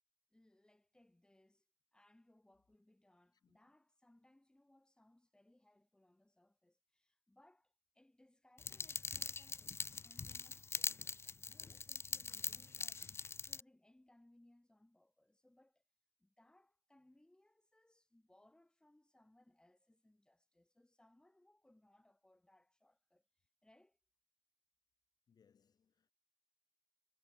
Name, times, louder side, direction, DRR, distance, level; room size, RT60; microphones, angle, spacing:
voice 1, 0.3-1.6 1.9-15.8 16.2-24.0, left 1 dB, 10° left, 3.2 m, -70 dB
sound 1, 8.6-13.6, left 5 dB, 40° left, 0.4 m, -43 dB
voice 2, 25.3-26.1, left 6 dB, 90° left, 3.1 m, -73 dB
wide cardioid pair, 115°, 7 cm